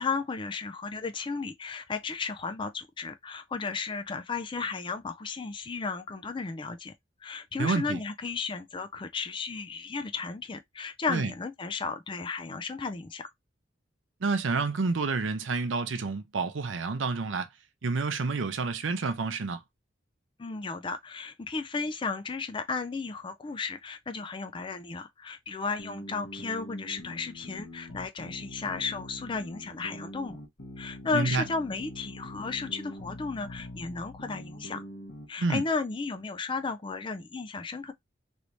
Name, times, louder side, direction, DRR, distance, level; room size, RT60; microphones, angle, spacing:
voice 1, 0.0-6.9 7.2-13.3 20.4-30.4 30.8-34.8 35.3-37.9, left 4 dB, 25° left, 0.4 m, -34 dB
voice 2, 7.6-8.0 11.1-11.3 14.2-17.5 17.8-19.6 31.1-31.4 35.4-35.6, right 4 dB, 80° right, 0.6 m, -29 dB
sound 1, 25.8-35.3, left 1 dB, 80° left, 1.2 m, -44 dB
3.2 x 2.7 x 3.0 m
head